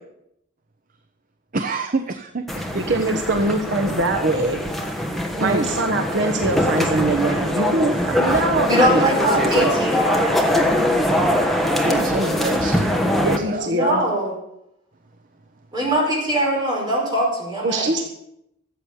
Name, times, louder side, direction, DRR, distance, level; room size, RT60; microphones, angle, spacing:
voice 1, 1.5-2.8 3.4-3.5 5.3-5.7 11.4-13.7, right 2 dB, 40° right, 8 dB, 0.8 m, -27 dB
sound 1, 2.5-13.4, left 1 dB, ahead, 1.3 m, -22 dB
voice 2, 2.9-4.6 5.4-9.1 9.3-9.7 13.2-14.0 17.6-18.0, right 2 dB, 60° right, 3 dB, 1.3 m, -22 dB
voice 3, 8.7-10.4 13.6-14.3 15.7-17.9, equal, 20° right, -3 dB, 5.2 m, -22 dB
14.0 x 8.1 x 8.3 m, 0.80 s
head